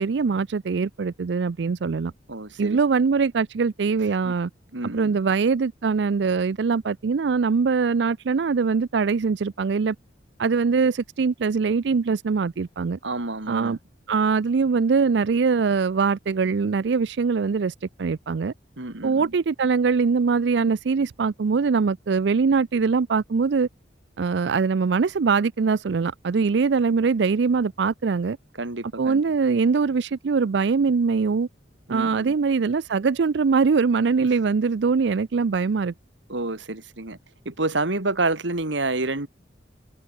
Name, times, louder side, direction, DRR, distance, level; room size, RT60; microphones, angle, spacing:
voice 1, 0.0-2.1 2.6-4.5 4.9-10.0 10.4-13.0 13.5-13.8 14.1-18.5 19.0-23.7 24.2-28.4 29.0-31.5 31.9-35.9, right 5 dB, 70° right, 0.4 m, -22 dB
voice 2, 2.3-2.8 4.2-4.3 4.7-5.1 13.0-13.8 18.8-19.3 28.6-29.2 31.9-32.3 36.3-37.2 37.5-39.3, right 2 dB, 85° right, 2.5 m, -28 dB
head